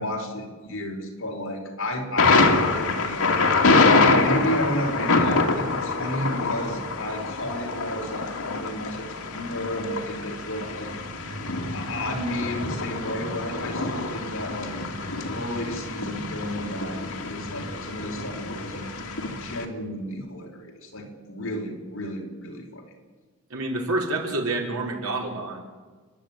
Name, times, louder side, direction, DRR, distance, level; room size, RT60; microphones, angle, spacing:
voice 1, 0.0-3.2 4.0-10.9 11.2-11.3 11.6-14.8 15.3-18.9 19.4-22.9, equal, 65° left, 1 dB, 4.8 m, -32 dB
Thunder, 2.2-19.6, left 3 dB, 80° left, 2.5 m, -25 dB
voice 2, 23.5-25.6, right 2 dB, 85° right, 0 dB, 4.6 m, -28 dB
29.5 x 11.0 x 9.1 m, 1.4 s
head